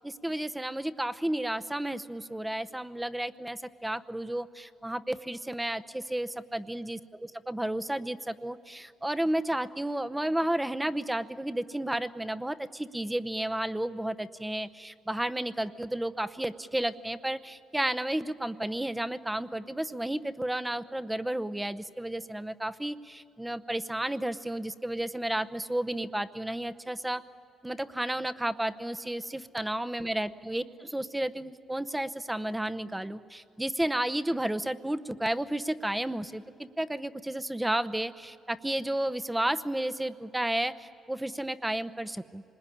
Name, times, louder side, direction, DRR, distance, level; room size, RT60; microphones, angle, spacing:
voice 1, 0.0-27.2 27.6-42.4, right 1 dB, 10° right, 12 dB, 0.8 m, -32 dB
26.0 x 20.5 x 10.0 m, 2.6 s
cardioid pair, 90°, 0 cm